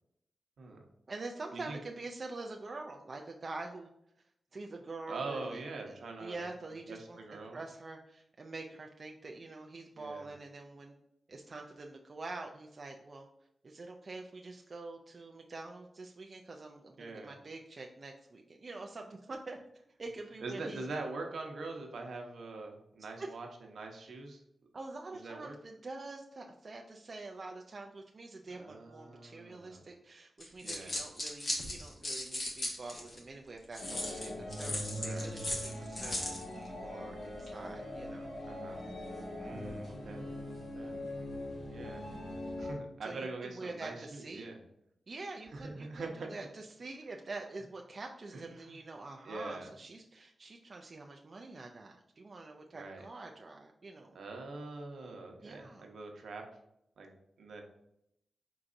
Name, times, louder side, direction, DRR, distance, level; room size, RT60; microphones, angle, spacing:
voice 1, 1.1-3.9 4.5-10.9 11.3-13.3 13.6-19.6 20.0-20.9 23.2-23.3 24.7-38.3 39.4-39.8 43.0-44.5 45.1-54.2 55.4-55.9, right 3 dB, 40° right, 2 dB, 0.3 m, -46 dB
voice 2, 5.1-6.4 6.9-7.6 10.0-10.3 17.0-17.3 20.4-24.4 25.1-25.5 28.5-29.8 30.6-31.0 35.0-35.3 38.4-38.8 39.4-40.3 40.6-41.0 41.7-42.0 42.6-44.6 45.5-46.3 48.3-48.7 49.2-49.7 52.7-53.0 54.1-56.5 57.0-57.1 57.4-57.6, right 3 dB, 70° right, 2 dB, 0.8 m, -43 dB
sound 1, 30.4-33.2 33.7-36.4, left 1 dB, 40° left, 1.0 m, -37 dB
sound 2, 33.8-42.7, left 1 dB, 90° left, 1.6 m, -42 dB
4.6 x 4.0 x 2.5 m, 0.78 s
wide cardioid pair, 140°, 0 cm